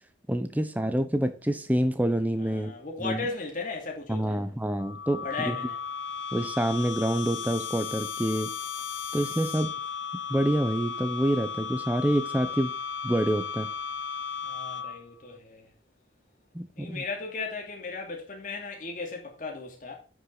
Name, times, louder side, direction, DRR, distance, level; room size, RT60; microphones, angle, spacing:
voice 1, 0.3-2.7 3.0-3.3 4.1-5.6 6.3-8.5 9.1-9.7 10.1-12.7 13.0-13.7 16.5-17.0, right 1 dB, 10° right, 0.9 m, -27 dB
voice 2, 2.4-4.4 5.2-5.8 14.4-15.7 16.7-19.9, left 4 dB, 45° left, 2.6 m, -36 dB
sound 1, 4.8-15.2, left 6 dB, 85° left, 0.5 m, -35 dB
9.7 x 6.2 x 4.0 m
head